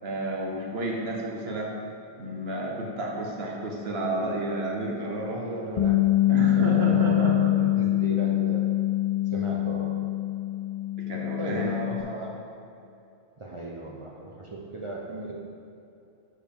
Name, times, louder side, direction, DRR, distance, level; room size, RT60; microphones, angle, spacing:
voice 1, 0.0-1.7 2.2-5.4 6.3-7.5 11.1-11.7, right 1 dB, 75° right, -2 dB, 1.3 m, -30 dB
voice 2, 5.3-6.0 6.6-8.6 9.3-9.9 11.4-12.3 13.4-15.3, right 2 dB, 35° right, -3 dB, 0.7 m, -36 dB
Bass guitar, 5.8-12.0, left 15 dB, 50° left, 0.4 m, -24 dB
6.8 x 4.7 x 5.3 m, 2.7 s
omnidirectional pair, 1.0 m